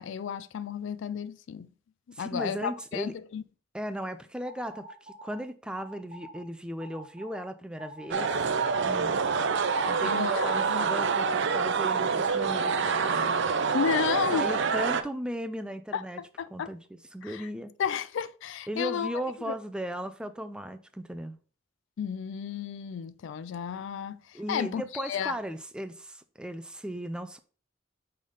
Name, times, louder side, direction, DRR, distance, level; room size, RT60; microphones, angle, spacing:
voice 1, 0.0-1.7 2.1-3.4 10.0-10.9 13.7-14.6 15.9-16.7 17.2-17.5 17.8-19.5 22.0-25.4, left 7 dB, 65° left, 0.3 m, -33 dB
voice 2, 2.1-3.1 3.7-9.2 9.9-13.4 14.3-16.2 16.5-17.7 18.7-21.4 24.3-27.4, equal, 5° right, 0.4 m, -37 dB
sound 1, 4.4-5.4 5.8-6.4 6.8-7.4 7.8-10.5, right 1 dB, 30° right, 1.4 m, -47 dB
sound 2, 8.1-15.0, right 5 dB, 65° right, 0.5 m, -26 dB
5.5 x 3.3 x 5.4 m
head